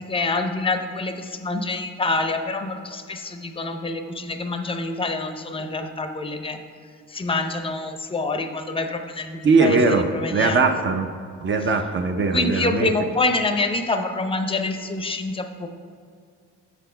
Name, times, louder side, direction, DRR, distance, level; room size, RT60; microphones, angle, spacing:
voice 1, 0.0-6.6 7.1-10.7 12.3-15.7, left 3 dB, 20° left, 7 dB, 0.6 m, -26 dB
voice 2, 9.4-10.1 10.3-11.1 11.4-12.9, right 4 dB, 40° right, 6 dB, 0.6 m, -20 dB
7.0 x 4.2 x 5.6 m, 2.2 s
cardioid pair, 90°, 30 cm